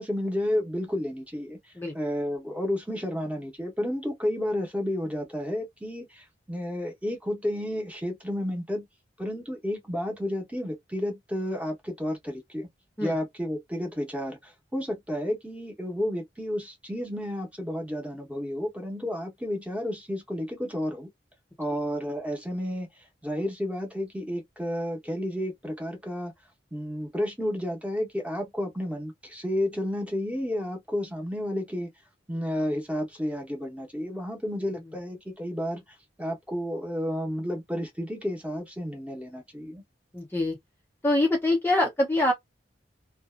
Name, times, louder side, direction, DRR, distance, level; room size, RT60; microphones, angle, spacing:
voice 1, 0.0-1.6 1.9-8.9 9.2-12.7 13.0-21.1 21.6-22.9 23.2-26.3 26.7-31.9 32.3-35.8 36.2-39.8, left 1 dB, 10° right, 0.9 m, -31 dB
voice 2, 40.1-40.6 41.0-42.3, left 1 dB, 15° left, 0.5 m, -24 dB
2.6 x 2.3 x 2.4 m
head